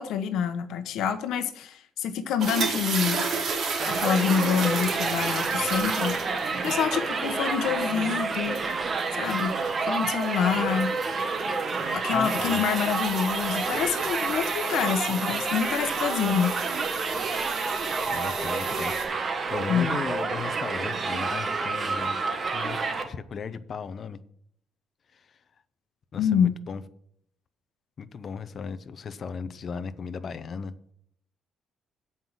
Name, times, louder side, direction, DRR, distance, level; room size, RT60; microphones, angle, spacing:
voice 1, 0.0-3.2 3.9-6.2 6.6-8.6 9.2-9.5 9.8-10.9 11.9-16.6 19.7-20.0 26.2-26.6, left 8 dB, 80° left, 9 dB, 1.0 m, -27 dB
sound 1, 2.4-19.0, right 4 dB, 60° right, 2.9 m, -34 dB
Crowd, 3.8-23.0, right 4 dB, 35° right, 1.1 m, -29 dB
voice 2, 12.1-12.6 18.1-22.2 22.5-24.2 25.1-25.3 26.1-26.8 28.0-30.7, left 5 dB, 40° left, 12 dB, 0.6 m, -37 dB
7.9 x 5.5 x 7.4 m, 0.67 s
cardioid pair, 140°, 0 cm